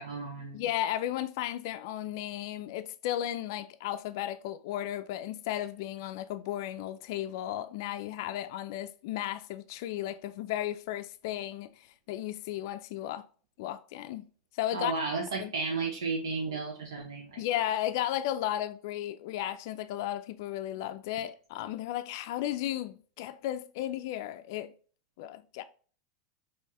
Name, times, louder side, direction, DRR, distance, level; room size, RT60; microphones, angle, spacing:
voice 1, 0.0-0.6 14.7-17.4, right 4 dB, 85° right, 0.6 m, -33 dB
voice 2, 0.5-13.3 13.6-14.2 14.5-14.9 15.4-15.5 17.4-24.7 25.2-25.6, left 12 dB, 65° left, 0.3 m, -34 dB
4.6 x 3.0 x 2.8 m
hypercardioid pair, 100°, 2 cm